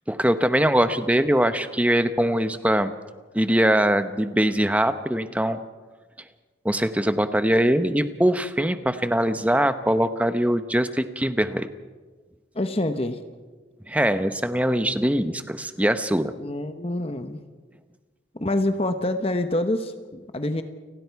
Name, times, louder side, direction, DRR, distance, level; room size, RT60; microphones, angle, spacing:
voice 1, 0.1-2.9 3.3-5.6 6.6-11.7 13.9-16.3, right 1 dB, 5° right, 10 dB, 0.9 m, -22 dB
voice 2, 12.5-13.2 16.4-17.4 18.4-20.6, left 1 dB, 30° left, 8 dB, 1.0 m, -26 dB
29.5 x 19.0 x 4.7 m, 1.3 s
head